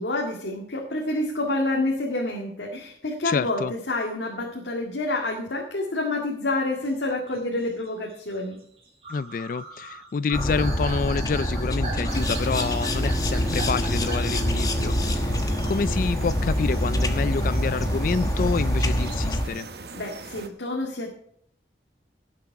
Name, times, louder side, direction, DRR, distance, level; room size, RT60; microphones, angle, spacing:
voice 1, 0.0-8.6 19.9-21.1, left 2 dB, 85° left, 2.0 m, -28 dB
voice 2, 3.2-3.7 9.1-15.4 15.6-19.7, left 5 dB, 50° left, 0.3 m, -28 dB
sound 1, 6.8-14.6, right 3 dB, 35° right, 3.5 m, -39 dB
sound 2, 10.3-19.4, equal, 20° left, 1.1 m, -25 dB
sound 3, 12.1-20.5, right 3 dB, 60° right, 1.1 m, -40 dB
17.5 x 7.6 x 4.7 m
head